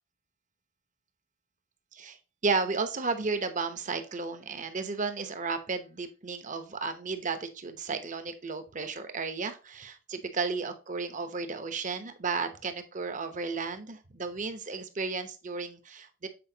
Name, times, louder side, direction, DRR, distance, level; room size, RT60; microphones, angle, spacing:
voice 1, 2.4-16.3, right 4 dB, 40° right, 9 dB, 0.9 m, -33 dB
7.8 x 4.6 x 2.8 m, 0.32 s
head